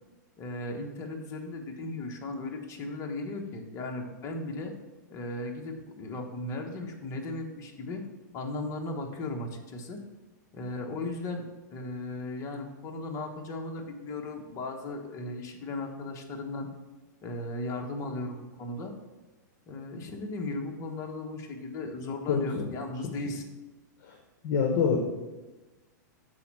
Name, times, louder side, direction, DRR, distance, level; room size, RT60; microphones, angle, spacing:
voice 1, 0.4-4.7 5.1-8.0 8.3-10.0 10.5-16.7 17.2-18.9 19.7-23.5, left 2 dB, 30° left, 2 dB, 1.1 m, -36 dB
voice 2, 22.3-22.6 24.1-24.2 24.4-25.0, left 6 dB, 50° left, 2 dB, 1.0 m, -26 dB
6.8 x 4.3 x 6.1 m, 1.1 s
hypercardioid pair, 135°, 10 cm